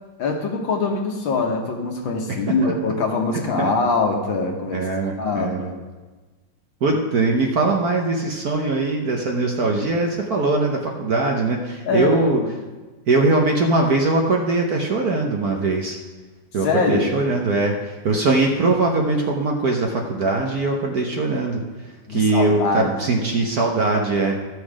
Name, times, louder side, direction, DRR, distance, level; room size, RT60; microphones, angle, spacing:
voice 1, 0.2-4.9 5.2-5.8 11.9-12.5 16.6-17.1 22.1-23.2, left 3 dB, 65° left, 2 dB, 1.9 m, -23 dB
voice 2, 2.3-2.7 3.6-3.7 4.7-5.7 6.8-12.4 13.1-16.0 16.5-24.3, right 3 dB, 55° right, 1 dB, 1.2 m, -21 dB
13.5 x 6.4 x 4.9 m, 1.3 s
omnidirectional pair, 2.3 m